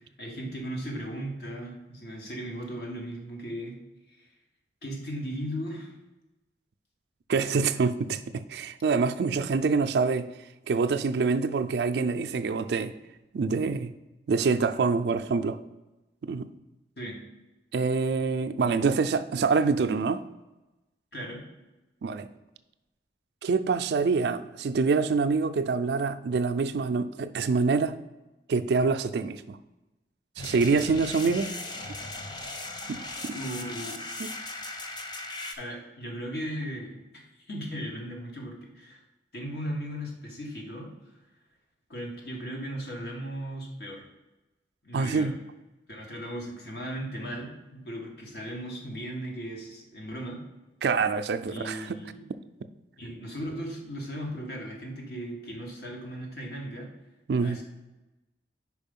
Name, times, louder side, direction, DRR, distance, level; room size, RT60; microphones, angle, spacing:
voice 1, 0.2-3.7 4.1-4.3 4.8-5.9 17.0-17.2 21.1-21.4 33.3-34.0 35.6-37.0 37.5-39.0 39.3-40.9 41.9-44.0 44.8-45.3 45.9-50.4 51.5-52.3 53.0-56.9 57.4-57.6, equal, 60° left, 0 dB, 1.5 m, -37 dB
voice 2, 7.3-10.3 10.7-12.9 13.3-13.9 14.3-15.6 16.2-16.5 17.7-20.2 22.0-22.3 23.4-27.9 28.5-29.6 30.4-31.5 32.9-33.4 34.2-34.3 44.9-45.3 50.8-51.9 57.3-57.6, right 4 dB, 65° right, 10 dB, 0.4 m, -26 dB
sound 1, 30.4-35.5, left 2 dB, 25° left, 0.5 m, -38 dB
5.0 x 4.8 x 5.3 m, 1.0 s
head